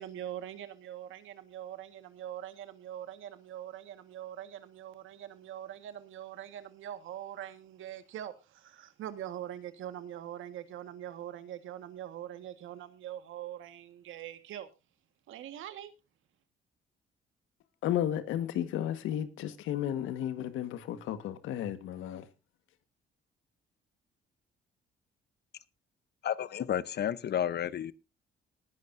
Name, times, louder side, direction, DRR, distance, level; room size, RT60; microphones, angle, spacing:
voice 1, 0.0-14.7 15.3-15.9, right 11 dB, 85° right, 1.7 m, -43 dB
voice 2, 17.8-22.3, left 11 dB, 90° left, 1.6 m, -33 dB
voice 3, 26.2-27.9, left 10 dB, 55° left, 0.9 m, -31 dB
19.0 x 10.5 x 2.7 m
cardioid pair, 90°, 20 cm